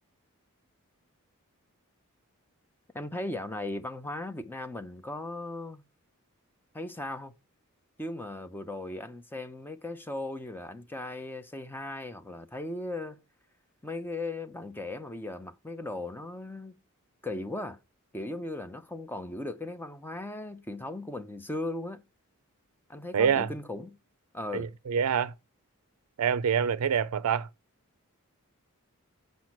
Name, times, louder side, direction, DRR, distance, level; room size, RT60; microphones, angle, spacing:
voice 1, 2.9-5.8 6.7-7.3 8.0-13.2 13.8-16.8 17.2-17.8 18.1-22.0 22.9-23.9 24.3-24.8, left 2 dB, 10° left, 0.6 m, -37 dB
voice 2, 23.1-23.5 24.5-25.3 26.2-27.5, right 7 dB, 80° right, 0.4 m, -26 dB
6.1 x 5.2 x 5.9 m
head